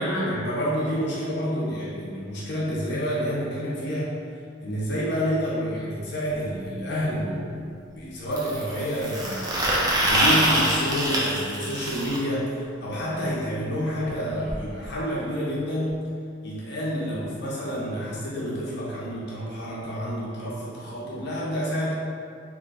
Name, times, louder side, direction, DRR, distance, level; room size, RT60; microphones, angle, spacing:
voice 1, 0.0-4.2 4.6-9.6 10.1-16.1 16.4-21.9, equal, 55° left, -7 dB, 0.6 m, -29 dB
sound 1, 6.3-6.4 8.3-12.2 14.1-14.2 14.5-14.6 14.8-15.0 15.9-16.0, right 1 dB, 20° right, 0.4 m, -24 dB
3.6 x 2.5 x 2.4 m, 2.3 s
head